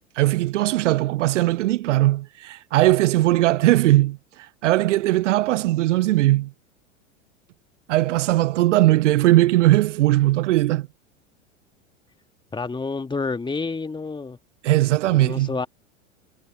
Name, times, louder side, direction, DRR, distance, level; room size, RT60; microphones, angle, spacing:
voice 1, 0.0-4.2 4.6-6.5 7.9-10.9 14.6-15.5, right 16 dB, 65° right, 0.6 m, -19 dB
voice 2, 12.5-14.4 15.1-15.7, left 4 dB, 10° left, 1.9 m, -29 dB
figure-of-eight pair, 85°, 39 cm